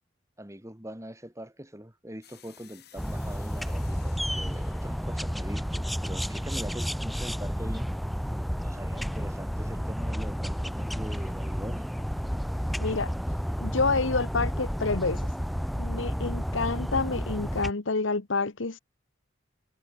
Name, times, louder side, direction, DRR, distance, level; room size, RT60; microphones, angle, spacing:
voice 1, 0.4-7.9 8.6-11.9, equal, 15° right, 5.0 m, -42 dB
sound 1, 2.2-7.1, left 10 dB, 55° left, 6.6 m, -57 dB
sound 2, 3.0-17.7, equal, ahead, 1.5 m, -31 dB
voice 2, 12.8-13.1 13.6-15.2 15.8-18.8, left 3 dB, 85° left, 1.2 m, -28 dB
head